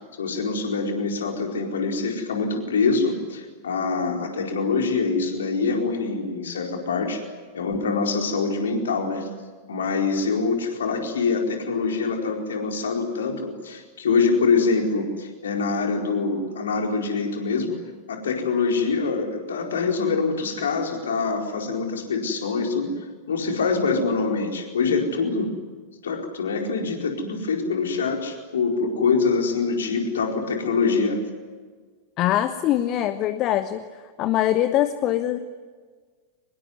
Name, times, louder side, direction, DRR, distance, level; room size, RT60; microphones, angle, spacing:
voice 1, 0.0-7.2 7.5-9.3 9.7-17.8 18.1-25.5 26.0-31.2, left 4 dB, 65° left, 2 dB, 4.5 m, -24 dB
voice 2, 32.2-33.8 34.2-35.4, left 12 dB, 35° left, 11 dB, 1.2 m, -22 dB
24.5 x 21.5 x 9.6 m, 1.5 s
figure-of-eight pair, 90°, 0 cm